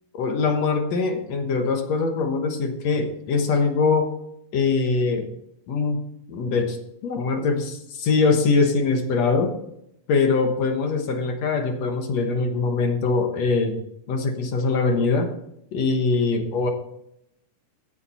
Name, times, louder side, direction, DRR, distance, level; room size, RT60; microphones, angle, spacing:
voice 1, 0.1-4.1 4.5-5.2 5.7-6.0 6.3-6.8 7.0-9.5 10.1-13.7 14.1-15.3 15.7-16.7, left 4 dB, 60° left, 5 dB, 2.0 m, -22 dB
15.5 x 7.1 x 4.2 m, 0.78 s
omnidirectional pair, 4.3 m